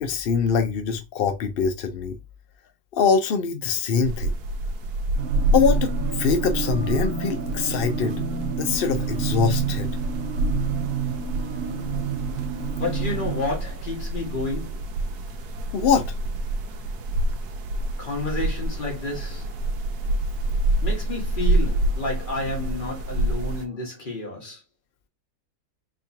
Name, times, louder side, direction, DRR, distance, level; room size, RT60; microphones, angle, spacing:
voice 1, 0.0-2.1 2.9-4.3 5.5-8.2 8.6-9.9 15.7-16.1, left 6 dB, 75° left, 0.5 m, -23 dB
sound 1, 4.0-23.7, right 1 dB, 85° right, 1.2 m, -27 dB
sound 2, 5.2-13.4, right 7 dB, 60° right, 1.0 m, -29 dB
voice 2, 12.7-14.8 18.0-19.5 20.8-24.6, left 2 dB, 35° left, 1.8 m, -30 dB
4.0 x 3.0 x 2.7 m
omnidirectional pair, 1.6 m